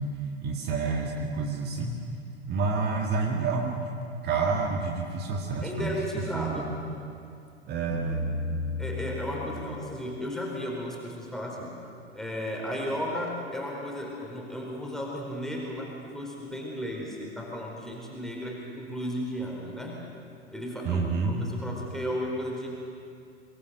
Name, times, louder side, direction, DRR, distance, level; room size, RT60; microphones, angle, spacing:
voice 1, 0.0-2.0 2.5-3.9 4.2-5.9 6.3-6.8 7.7-8.3 9.4-9.7 20.8-21.5, right 4 dB, 30° right, 1 dB, 1.9 m, -29 dB
voice 2, 5.6-6.7 8.8-11.7 12.1-20.0 20.5-22.7, equal, ahead, -2 dB, 4.2 m, -34 dB
sound 1, 7.9-10.3, left 3 dB, 60° left, 5.7 m, -34 dB
25.0 x 19.5 x 6.8 m, 2.5 s
figure-of-eight pair, 100°, 34 cm